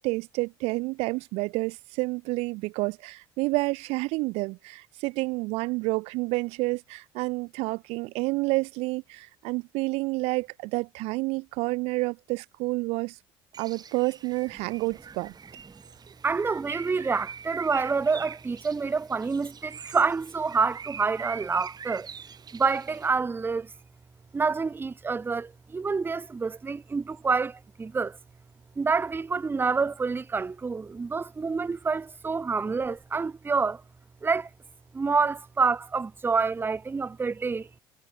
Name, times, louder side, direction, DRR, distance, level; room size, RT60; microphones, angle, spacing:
voice 1, 0.0-13.2 13.6-15.3, right 24 dB, 65° right, 0.5 m, -29 dB
Bird, 13.5-23.1, right 7 dB, 35° right, 1.5 m, -43 dB
voice 2, 16.2-22.1 22.5-23.7 24.3-28.2 28.8-33.8 34.2-34.5 34.9-37.8, right 4 dB, 20° right, 0.5 m, -27 dB
hypercardioid pair, 60°, 11 cm